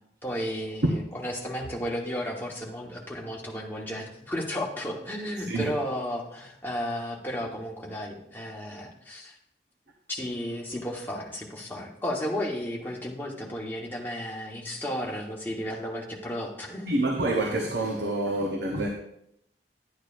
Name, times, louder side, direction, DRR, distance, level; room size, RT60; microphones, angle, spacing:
voice 1, 0.2-9.4 10.1-16.9, equal, 10° left, 1.2 m, -33 dB
voice 2, 5.4-5.7 16.9-18.9, right 1 dB, 70° right, 0.9 m, -27 dB
10.5 x 9.2 x 2.5 m
head